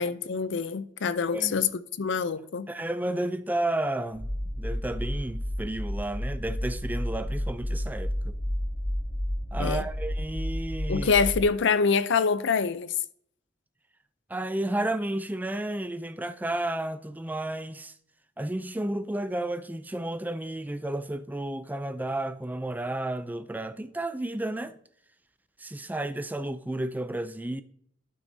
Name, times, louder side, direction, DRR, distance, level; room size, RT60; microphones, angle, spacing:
voice 1, 0.0-1.7 2.0-2.7 9.6-9.8 10.9-12.9, left 5 dB, 65° left, 0.5 m, -25 dB
voice 2, 1.3-1.6 2.7-8.4 9.5-11.1 14.3-17.9 18.4-24.8 25.6-27.6, right 1 dB, 10° right, 0.4 m, -32 dB
sound 1, 4.1-11.4, equal, 15° left, 2.2 m, -31 dB
12.0 x 6.2 x 2.7 m
head